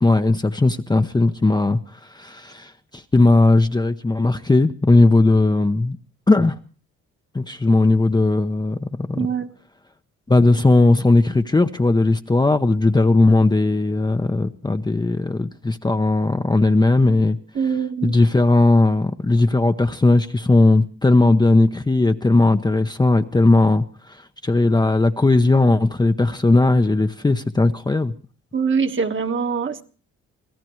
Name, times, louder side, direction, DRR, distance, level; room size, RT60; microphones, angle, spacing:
voice 1, 0.0-6.0 6.3-6.6 7.3-9.3 10.3-17.4 18.0-28.1, left 2 dB, 15° left, 0.8 m, -17 dB
voice 2, 9.1-9.5 17.5-18.2 28.5-29.8, right 6 dB, 40° right, 1.5 m, -23 dB
25.5 x 16.5 x 3.1 m
cardioid pair, 90°, 30 cm